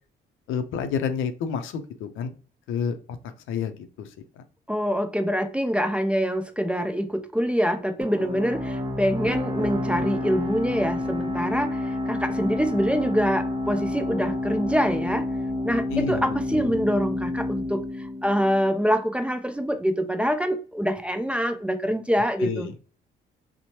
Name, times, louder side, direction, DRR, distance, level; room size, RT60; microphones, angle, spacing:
voice 1, 0.5-2.3 2.7-3.0 3.5-4.1 15.9-16.8 22.4-22.7, left 7 dB, 80° left, 0.5 m, -29 dB
voice 2, 4.7-15.3 15.6-22.7, equal, 5° right, 0.3 m, -25 dB
sound 1, 8.0-19.4, left 1 dB, 25° right, 0.7 m, -29 dB
2.9 x 2.0 x 2.8 m
cardioid pair, 90°, 20 cm